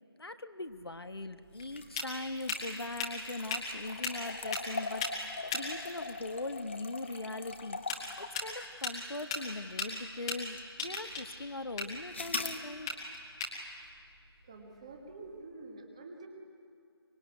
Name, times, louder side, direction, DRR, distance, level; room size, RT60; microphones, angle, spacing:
voice 1, 0.2-7.8 8.2-12.9, left 2 dB, 65° left, 9 dB, 1.2 m, -41 dB
sound 1, 0.7-15.4, left 3 dB, 10° left, 1.5 m, -40 dB
sound 2, 1.6-10.1 10.6-10.7 12.1-12.6, left 3 dB, 25° left, 1.1 m, -42 dB
voice 2, 14.4-16.3, right 3 dB, 15° right, 3 dB, 1.4 m, -48 dB
24.0 x 22.0 x 9.6 m, 2.5 s
figure-of-eight pair, 170°, 14 cm